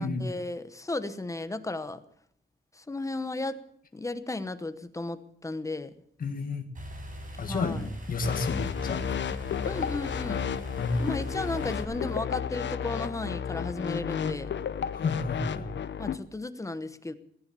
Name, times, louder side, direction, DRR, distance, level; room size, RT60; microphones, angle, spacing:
voice 1, 0.0-2.0 2.7-3.6 3.9-5.9 7.5-7.9 9.6-10.5 11.0-14.5 16.0-17.1, left 2 dB, 15° left, 11 dB, 1.0 m, -34 dB
voice 2, 6.2-6.6 7.4-9.0 10.8-11.0 14.9-15.7, left 3 dB, 40° left, 4 dB, 1.7 m, -31 dB
sound 1, 6.7-11.8, equal, 40° right, 5.6 m, -42 dB
sound 2, 8.2-16.2, left 7 dB, 60° left, 0.9 m, -32 dB
19.0 x 10.5 x 6.9 m, 0.67 s
wide cardioid pair, 165°, 21 cm